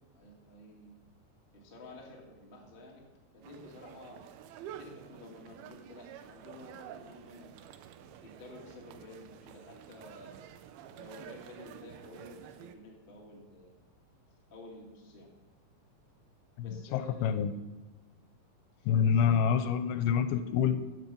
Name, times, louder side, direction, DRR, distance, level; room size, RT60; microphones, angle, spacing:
voice 1, 0.1-1.0 1.5-3.0 3.3-4.2 4.8-7.6 8.2-10.5 10.9-13.7 14.5-15.3 16.6-17.3 18.8-18.9, left 1 dB, 25° left, -1 dB, 1.1 m, -51 dB
sound 1, 3.4-12.8, right 10 dB, 80° right, 2.6 m, -50 dB
voice 2, 16.6-17.5 18.9-20.8, left 7 dB, 85° left, 11 dB, 2.6 m, -27 dB
14.5 x 8.0 x 5.4 m, 1.2 s
omnidirectional pair, 4.5 m